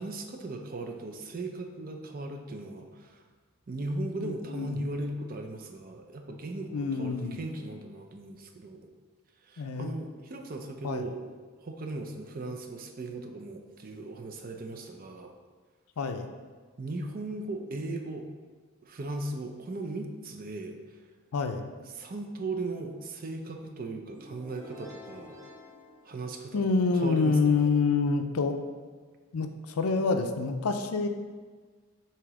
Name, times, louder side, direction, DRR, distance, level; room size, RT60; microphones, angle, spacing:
voice 1, 0.0-3.3 3.7-8.8 9.4-11.2 11.6-15.3 16.8-18.3 18.8-20.8 21.9-25.4 26.0-27.7, right 2 dB, 40° right, 4 dB, 0.5 m, -37 dB
voice 2, 4.2-4.8 6.7-7.4 9.6-9.9 10.8-11.1 16.0-16.3 21.3-21.7 26.5-28.6 29.3-31.1, left 4 dB, 90° left, 7 dB, 0.5 m, -27 dB
sound 1, 24.1-26.9, left 1 dB, 15° right, 1.6 m, -50 dB
6.9 x 3.0 x 4.8 m, 1.5 s
head